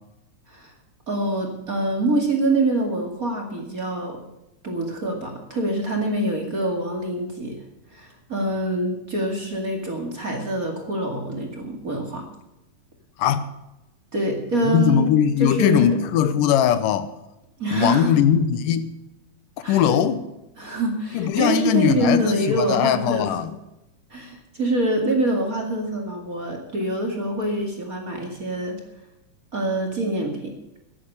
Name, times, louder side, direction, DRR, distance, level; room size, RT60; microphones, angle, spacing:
voice 1, 1.1-4.2 4.6-7.6 7.9-12.3 14.1-15.1 15.4-16.0 17.6-18.2 19.6-19.8 20.6-23.5 24.1-28.8 29.5-30.8, right 1 dB, 30° right, 1 dB, 2.2 m, -25 dB
voice 2, 13.2-13.5 14.6-17.1 17.7-19.0 19.7-20.3 21.1-23.5, left 9 dB, 85° left, 12 dB, 2.5 m, -20 dB
14.0 x 10.0 x 6.7 m, 0.94 s
omnidirectional pair, 3.7 m